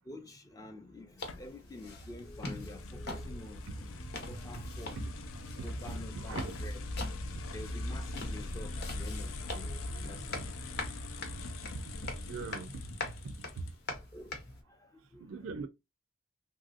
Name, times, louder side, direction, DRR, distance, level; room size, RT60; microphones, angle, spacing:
voice 1, 0.1-5.0 5.6-6.8 7.5-10.5 14.1-14.4 14.8-15.4, left 1 dB, 15° left, 0.4 m, -48 dB
sound 1, 1.2-14.6, left 2 dB, 55° left, 0.8 m, -45 dB
sound 2, 1.3-14.0, left 1 dB, 85° left, 0.5 m, -41 dB
voice 2, 5.6-6.5 7.3-7.4 11.7-11.8 12.1-12.7 13.2-13.3 15.3-15.7, right 4 dB, 85° right, 0.4 m, -41 dB
3.2 x 2.7 x 2.4 m
head